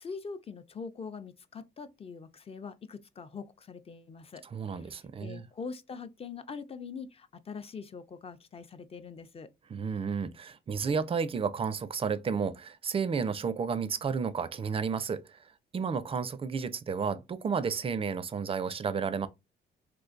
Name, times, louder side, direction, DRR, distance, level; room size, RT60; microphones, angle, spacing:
voice 1, 0.0-4.4 4.7-4.9 5.2-9.5, left 5 dB, 30° left, 0.4 m, -43 dB
voice 2, 4.5-5.4 9.7-15.2 15.7-19.3, right 6 dB, 30° right, 0.4 m, -32 dB
3.8 x 2.5 x 2.4 m
cardioid pair, 90°, 20 cm